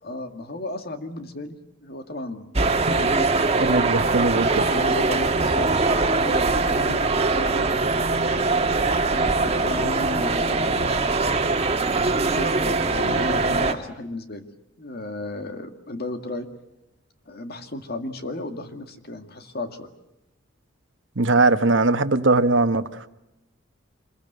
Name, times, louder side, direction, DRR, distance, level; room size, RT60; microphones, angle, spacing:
voice 1, 0.0-2.5 3.0-3.4 4.6-5.8 6.1-7.7 9.1-11.0 12.2-14.5 14.8-16.5 17.3-19.9, left 1 dB, 55° left, 2.1 m, -34 dB
sound 1, 2.6-13.7, right 3 dB, 30° right, 1.6 m, -22 dB
voice 2, 3.6-4.7 21.2-22.8, right 3 dB, 65° right, 1.2 m, -20 dB
26.0 x 22.5 x 8.0 m
head